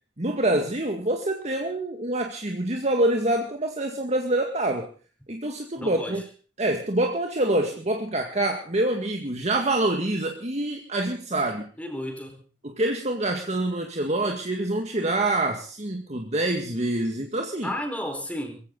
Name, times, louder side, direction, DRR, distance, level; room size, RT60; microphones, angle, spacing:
voice 1, 0.2-4.9 5.3-6.2 6.6-11.7 12.6-17.7, right 1 dB, 40° right, 3 dB, 2.0 m, -26 dB
voice 2, 5.8-6.2 11.8-12.4 17.6-18.6, equal, 10° left, 5 dB, 4.6 m, -33 dB
22.0 x 16.0 x 4.0 m, 0.38 s
head